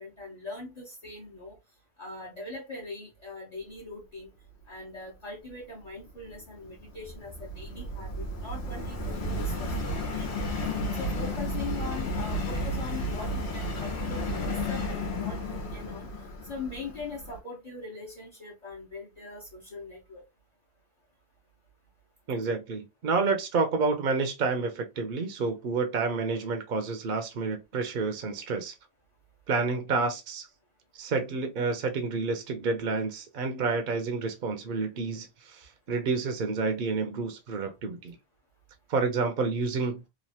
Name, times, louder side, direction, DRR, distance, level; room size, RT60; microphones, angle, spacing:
voice 1, 0.0-1.6 2.0-4.3 4.7-10.5 10.9-14.8 15.1-16.1 16.5-20.2, left 3 dB, 40° left, 1.0 m, -41 dB
Subway metro underground, 6.1-17.4, left 1 dB, 80° left, 1.2 m, -33 dB
voice 2, 22.3-28.7 29.5-30.5 31.0-38.1 38.9-40.0, right 4 dB, 60° right, 0.7 m, -29 dB
3.0 x 2.4 x 2.7 m
omnidirectional pair, 1.1 m